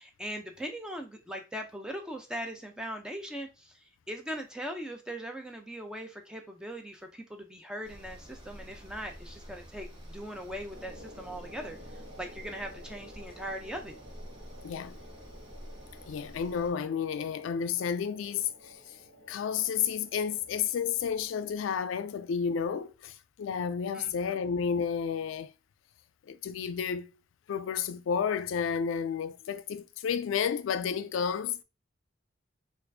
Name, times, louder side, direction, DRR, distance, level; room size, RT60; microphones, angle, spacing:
voice 1, 0.0-3.8 4.1-14.0 23.9-24.4, equal, 5° right, 0.5 m, -40 dB
sound 1, 7.8-16.7, equal, 25° right, 1.0 m, -48 dB
sound 2, 10.7-21.1, equal, 80° right, 1.1 m, -53 dB
voice 2, 14.6-15.0 16.1-19.0 19.3-25.5 26.3-27.1 27.5-31.6, left 7 dB, 90° left, 0.3 m, -31 dB
4.2 x 2.5 x 2.6 m
head